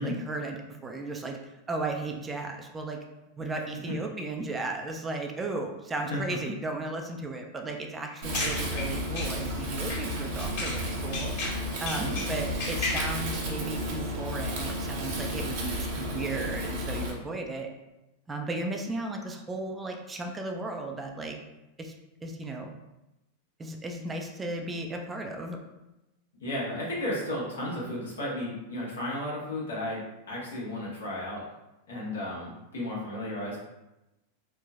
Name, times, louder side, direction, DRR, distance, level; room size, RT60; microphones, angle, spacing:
voice 1, 0.0-3.0 3.4-11.3 11.8-17.7 18.3-21.4 21.8-21.9 22.2-22.7 23.6-25.6, right 2 dB, 20° right, 2 dB, 0.4 m, -35 dB
sound 1, 8.1-10.9 11.1-13.2, left 2 dB, 60° left, 1.3 m, -34 dB
Wind, 8.2-17.1, equal, 65° right, 0.8 m, -32 dB
voice 2, 26.4-30.0 30.3-31.4 31.9-33.6, left 1 dB, 90° left, -6 dB, 1.1 m, -33 dB
3.1 x 2.1 x 2.4 m, 0.97 s
hypercardioid pair, 105°, 0 cm